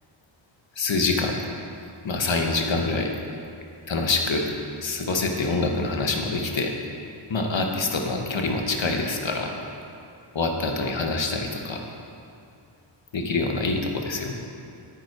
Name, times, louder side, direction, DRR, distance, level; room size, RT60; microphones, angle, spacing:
voice 1, 0.8-1.4 2.0-3.1 3.9-4.5 4.8-6.7 7.3-9.5 10.3-11.8 13.1-14.3, left 3 dB, 75° left, 2 dB, 1.2 m, -25 dB
9.3 x 9.2 x 4.7 m, 2.5 s
wide cardioid pair, 75°, 46 cm